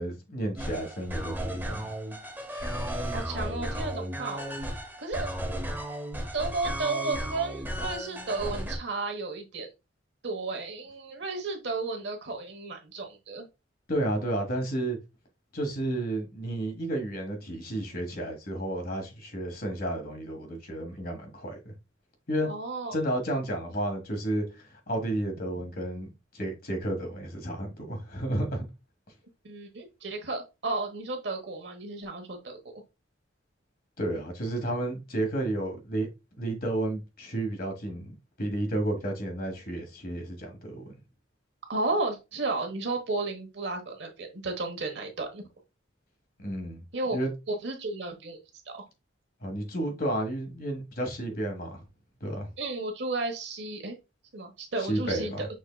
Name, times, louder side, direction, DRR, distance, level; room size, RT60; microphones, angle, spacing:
voice 1, 0.0-1.9 13.9-15.0 15.5-21.7 22.3-22.5 22.9-26.1 26.3-28.6 34.0-36.1 36.4-40.8 46.4-46.8 47.1-47.3 49.4-51.8 52.2-52.5 54.8-55.4, right 1 dB, 50° left, 1.4 m, -32 dB
sound 1, 0.6-8.8, equal, 10° right, 1.0 m, -34 dB
voice 2, 3.1-4.5 5.0-5.3 6.3-9.7 10.2-13.5 22.4-23.0 29.4-32.6 41.7-45.4 46.9-47.2 47.5-48.4 48.7-48.8 52.6-53.9 54.3-55.5, right 3 dB, 60° right, 1.2 m, -33 dB
6.3 x 3.7 x 2.2 m
head